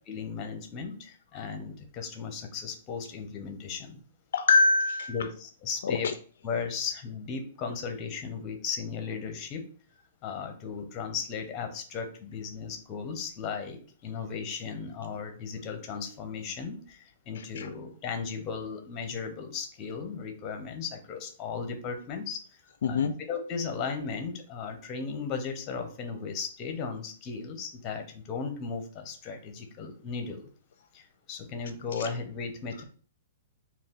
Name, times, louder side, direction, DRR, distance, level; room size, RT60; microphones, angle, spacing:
voice 1, 0.1-4.0 5.1-6.1 6.4-9.6 10.2-22.6 22.9-30.5 30.9-32.8, left 5 dB, 25° left, 5 dB, 0.8 m, -36 dB
voice 2, 4.3-5.1 5.8-6.1 17.6-17.7 22.8-23.1, left 4 dB, 70° left, 9 dB, 0.4 m, -24 dB
3.9 x 2.4 x 3.6 m, 0.42 s
hypercardioid pair, 155°, 0 cm